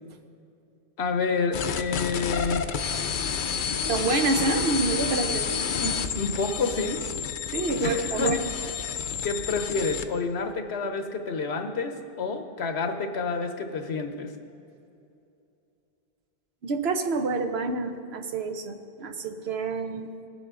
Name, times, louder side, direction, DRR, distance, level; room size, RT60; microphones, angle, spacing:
voice 1, 1.0-2.7 5.8-7.0 7.8-8.4 9.2-14.3, left 4 dB, 80° left, 6 dB, 1.2 m, -29 dB
sound 1, 1.5-10.1, left 7 dB, 60° left, 0.6 m, -30 dB
voice 2, 3.9-5.6 7.5-8.4 16.6-20.1, right 3 dB, 75° right, 6 dB, 1.1 m, -27 dB
19.5 x 7.5 x 3.7 m, 2.6 s
omnidirectional pair, 1.1 m